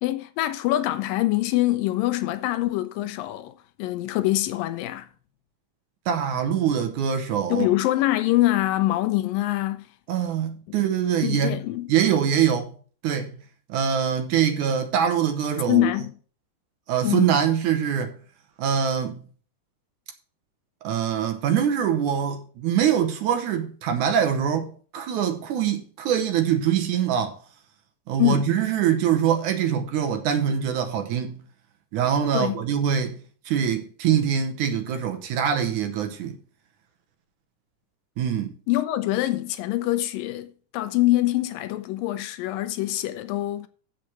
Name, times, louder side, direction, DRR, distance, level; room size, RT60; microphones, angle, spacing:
voice 1, 0.0-5.1 7.5-9.9 10.7-10.8 11.2-11.9 15.7-16.1 17.0-17.3 28.2-28.5 32.3-32.6 38.7-43.7, left 16 dB, 80° left, 2.4 m, -24 dB
voice 2, 6.1-7.7 10.1-11.6 11.9-12.7 13.0-13.3 13.7-15.9 16.9-18.2 18.6-19.2 20.8-27.4 28.1-31.4 31.9-36.4 38.2-38.5, right 8 dB, 70° right, 2.2 m, -24 dB
7.6 x 6.4 x 5.9 m
omnidirectional pair, 4.0 m